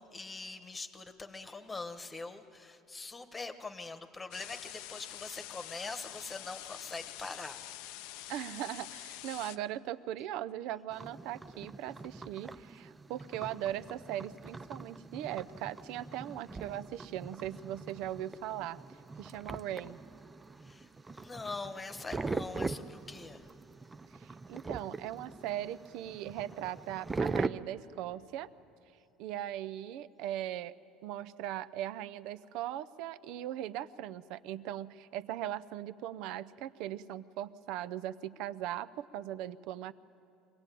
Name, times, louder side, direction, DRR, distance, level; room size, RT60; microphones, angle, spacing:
voice 1, 0.0-7.6 20.6-23.5, left 3 dB, 15° left, 9 dB, 1.2 m, -43 dB
sound 1, 4.3-9.6, left 14 dB, 80° left, 0.6 m, -46 dB
voice 2, 8.3-18.8 19.2-20.0 24.2-28.5 29.2-30.7 31.0-39.9, right 12 dB, 65° right, 15 dB, 0.6 m, -39 dB
sound 2, 10.9-27.5, right 3 dB, 15° right, 0.4 m, -41 dB
23.5 x 17.0 x 9.1 m, 3.0 s
cardioid pair, 135°, 0 cm